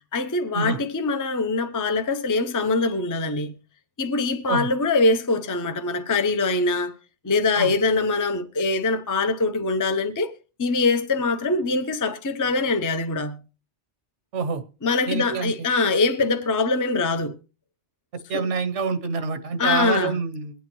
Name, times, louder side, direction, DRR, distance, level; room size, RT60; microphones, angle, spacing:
voice 1, 0.0-3.5 4.0-6.9 7.2-10.3 10.6-13.4 14.8-17.3 19.6-20.2, left 3 dB, 20° left, 0.6 m, -23 dB
voice 2, 15.1-15.5 18.3-20.7, right 4 dB, 90° right, 1.2 m, -26 dB
22.5 x 8.4 x 3.1 m
omnidirectional pair, 1.2 m